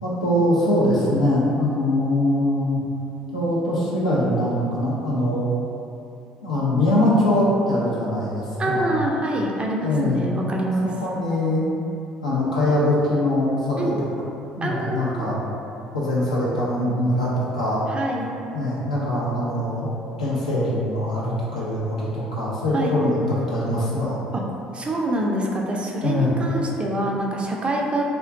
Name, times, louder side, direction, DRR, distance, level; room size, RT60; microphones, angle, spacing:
voice 1, 0.0-2.8 3.3-5.5 6.4-8.9 9.8-10.2 10.8-11.7 12.2-13.9 14.6-15.4 15.9-17.8 18.5-19.9 20.2-23.2 23.5-24.2 26.0-26.3, left 1 dB, 90° left, -8 dB, 0.4 m, -22 dB
voice 2, 8.6-10.9 13.8-14.0 14.6-15.3 17.9-18.3 22.7-22.9 24.3-24.4 24.7-28.0, right 1 dB, 30° right, -1 dB, 0.4 m, -25 dB
2.4 x 2.1 x 2.4 m, 2.7 s
figure-of-eight pair, 55°, 4 cm